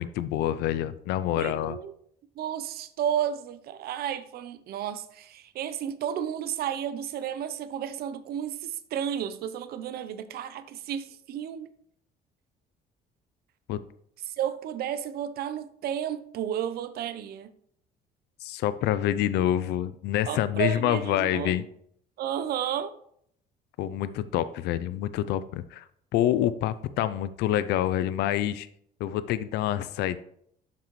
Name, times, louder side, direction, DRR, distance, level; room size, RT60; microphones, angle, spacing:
voice 1, 0.0-1.8 13.7-13.8 18.4-21.6 23.8-25.9 26.1-28.7 29.0-30.2, left 12 dB, 80° left, 0.4 m, -27 dB
voice 2, 1.4-1.9 2.4-11.7 14.3-17.5 20.3-21.6 22.2-22.9, right 9 dB, 65° right, 0.7 m, -32 dB
7.4 x 6.0 x 3.1 m
cardioid pair, 110°, 17 cm